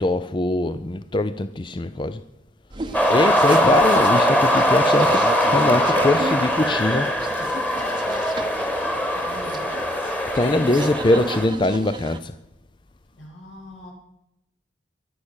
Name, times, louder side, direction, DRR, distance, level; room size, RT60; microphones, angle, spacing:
voice 1, 0.0-2.2 3.1-7.1 10.4-12.3, left 2 dB, 25° left, 0.5 m, -22 dB
voice 2, 2.7-4.5 9.1-10.0 13.1-13.9, left 2 dB, 80° left, 7.8 m, -41 dB
sound 1, 2.7-12.2, right 2 dB, 25° right, 0.8 m, -33 dB
sound 2, 2.9-11.5, equal, 10° left, 1.6 m, -21 dB
23.0 x 8.5 x 6.4 m
head